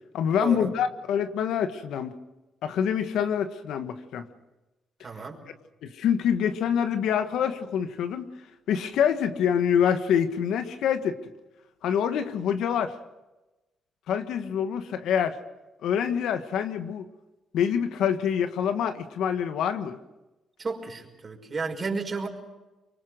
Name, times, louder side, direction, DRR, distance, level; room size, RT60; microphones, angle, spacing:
voice 1, 0.1-2.2 2.6-4.3 5.8-8.3 8.7-11.2 11.8-13.0 14.1-15.4 15.8-17.0 17.5-20.0, left 8 dB, 80° left, 8 dB, 1.5 m, -26 dB
voice 2, 5.0-5.4 20.6-22.3, right 4 dB, 35° right, 2 dB, 5.5 m, -32 dB
24.5 x 23.5 x 6.5 m, 1.1 s
cardioid pair, 90°, 0 cm